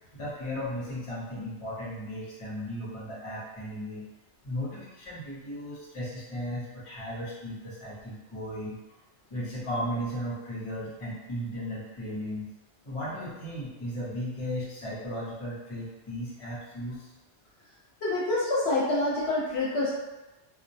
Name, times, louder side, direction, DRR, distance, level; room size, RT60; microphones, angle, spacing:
voice 1, 0.1-4.1 4.4-8.8 9.3-12.5 12.8-17.1, equal, 35° left, -7 dB, 0.7 m, -36 dB
voice 2, 18.0-19.9, left 2 dB, 65° left, -6 dB, 0.9 m, -27 dB
2.2 x 2.1 x 2.6 m, 1.1 s
omnidirectional pair, 1.2 m